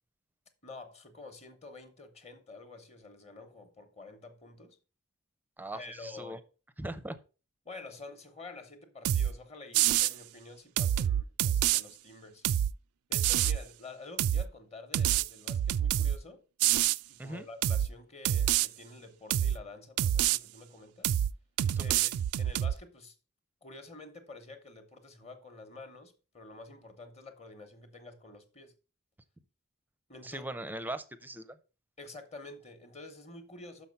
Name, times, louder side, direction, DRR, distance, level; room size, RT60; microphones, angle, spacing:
voice 1, 0.6-4.8 5.7-6.4 7.6-12.4 13.1-16.4 17.1-21.1 21.8-23.1 23.6-28.7 30.1-30.5 32.0-33.9, left 3 dB, 30° left, 1.0 m, -49 dB
voice 2, 5.6-6.4 6.8-7.2 17.2-17.5 21.7-21.8 30.2-31.6, right 1 dB, 10° right, 0.5 m, -40 dB
sound 1, 9.0-9.3 9.7-10.1 10.8-11.8 12.4-12.7 13.1-13.6 14.2-14.5 14.9-16.2 16.6-17.0 17.6-17.9 18.2-18.7 19.3-19.6 20.0-20.4 21.0-21.3 21.6-22.7, right 11 dB, 80° right, 0.3 m, -27 dB
6.2 x 5.8 x 5.3 m
head